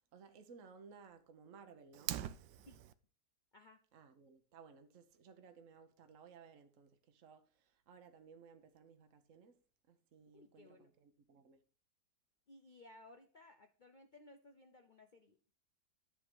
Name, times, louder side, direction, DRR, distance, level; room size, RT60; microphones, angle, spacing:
voice 1, 0.1-2.2 3.9-9.5 9.9-11.6, right 5 dB, 55° right, 1.2 m, -59 dB
Fire, 1.9-2.9, right 12 dB, 85° right, 1.2 m, -42 dB
voice 2, 10.3-10.9 12.5-15.4, left 2 dB, 85° left, 0.4 m, -60 dB
10.5 x 3.8 x 6.1 m
omnidirectional pair, 1.8 m